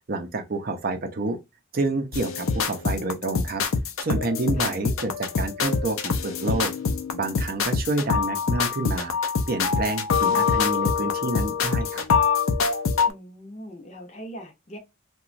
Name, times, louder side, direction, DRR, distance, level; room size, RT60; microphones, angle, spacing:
voice 1, 0.1-1.4 1.7-3.6 4.0-6.7 7.1-9.1 9.5-12.0, right 2 dB, 45° right, 0.5 m, -28 dB
sound 1, 2.1-13.1, left 5 dB, 75° left, 0.5 m, -24 dB
voice 2, 13.1-14.8, right 1 dB, 35° left, 0.6 m, -41 dB
2.9 x 2.2 x 2.5 m
head